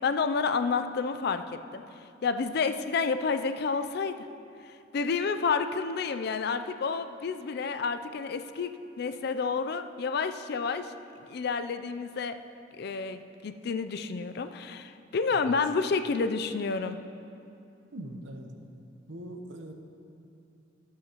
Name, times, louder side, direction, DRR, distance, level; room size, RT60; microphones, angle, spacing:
voice 1, 0.0-1.4 1.7-1.8 2.2-4.3 4.9-10.9 11.2-12.4 12.8-17.0, left 5 dB, 60° left, 9 dB, 0.4 m, -30 dB
voice 2, 17.9-18.5 19.1-19.7, right 1 dB, 85° right, 4 dB, 0.9 m, -41 dB
14.5 x 8.4 x 3.0 m, 2.6 s
head